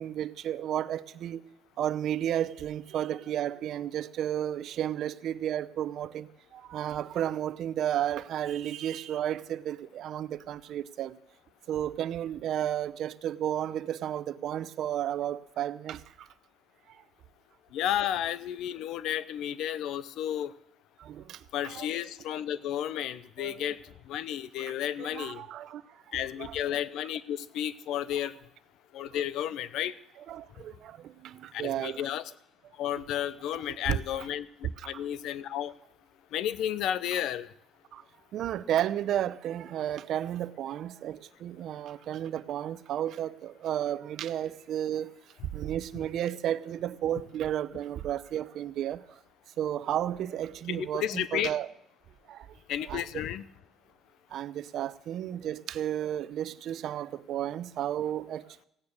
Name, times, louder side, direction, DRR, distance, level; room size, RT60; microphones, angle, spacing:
voice 1, 0.0-1.4 1.8-6.3 6.5-11.1 11.7-16.0 21.0-21.4 21.6-21.9 23.4-23.6 25.0-25.8 26.4-26.5 30.3-31.0 31.2-32.0 33.7-34.0 34.8-34.9 37.9-38.0 38.3-45.1 45.5-49.0 49.6-51.7 52.3-52.4 52.9-53.2 54.3-58.4, right 11 dB, 65° right, 0.7 m, -32 dB
voice 2, 17.7-20.5 21.5-25.4 26.1-28.3 28.9-29.9 31.5-32.3 32.8-34.5 34.8-35.7 36.3-37.5 50.7-51.5 52.7-53.4, left 11 dB, 75° left, 0.7 m, -32 dB
16.0 x 9.5 x 6.5 m
cardioid pair, 105°, 0 cm